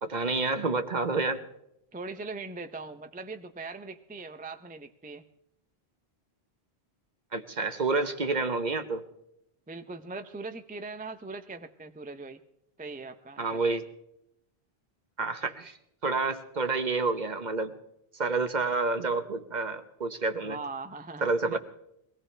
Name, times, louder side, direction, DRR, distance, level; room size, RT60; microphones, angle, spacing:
voice 1, 0.0-1.4 7.3-9.0 13.4-13.8 15.2-15.8 16.0-17.7 18.1-20.6 21.2-21.6, right 3 dB, 45° right, 8 dB, 1.1 m, -29 dB
voice 2, 1.9-5.2 9.7-12.4 12.8-13.6 20.4-21.6, right 3 dB, 10° right, 8 dB, 0.5 m, -40 dB
23.0 x 18.0 x 3.3 m, 0.79 s
omnidirectional pair, 1.0 m